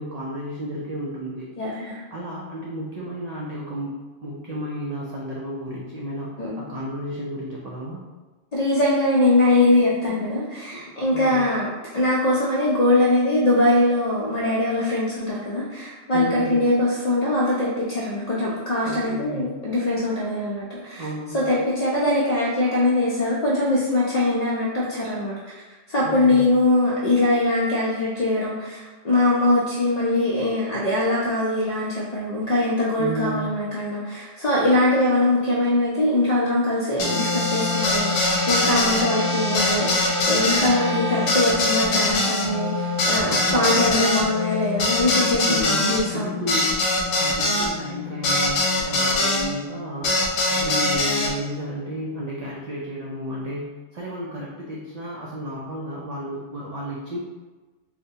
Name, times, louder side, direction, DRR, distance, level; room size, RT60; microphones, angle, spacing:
voice 1, 0.0-1.5 2.1-3.9 4.2-8.0 11.1-11.4 16.1-16.6 18.8-19.5 21.0-21.4 26.0-26.5 33.0-33.5 43.2-44.0 45.4-46.8 47.2-57.2, equal, 80° right, -4 dB, 0.3 m, -32 dB
voice 2, 1.6-2.0 6.4-6.6 8.5-11.7 11.9-21.1 21.3-25.5 25.9-46.5, left 1 dB, 55° left, -6 dB, 0.4 m, -22 dB
sound 1, 37.0-49.5 50.0-51.3, left 2 dB, 75° left, 0.9 m, -23 dB
3.9 x 2.1 x 2.7 m, 1.2 s
omnidirectional pair, 1.3 m